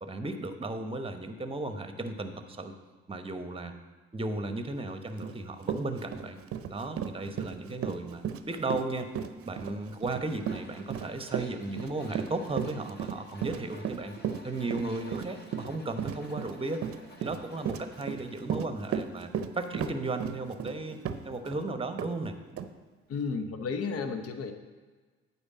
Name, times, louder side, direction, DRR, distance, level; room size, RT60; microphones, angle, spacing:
voice 1, 0.0-2.7 3.1-3.8 4.1-6.4 6.7-9.1 9.4-14.1 14.4-16.8 17.2-21.0 21.2-22.4, right 2 dB, 20° right, 8 dB, 1.0 m, -35 dB
Run, 5.2-5.3 5.6-21.6 22.0-22.1 22.6-22.7, right 8 dB, 50° right, 0.7 m, -35 dB
Tools, 10.4-18.4, left 1 dB, 35° left, 1.7 m, -53 dB
voice 2, 23.1-24.5, left 5 dB, 50° left, 7 dB, 1.0 m, -33 dB
8.6 x 4.6 x 7.3 m, 1.4 s
hypercardioid pair, 55°, 30 cm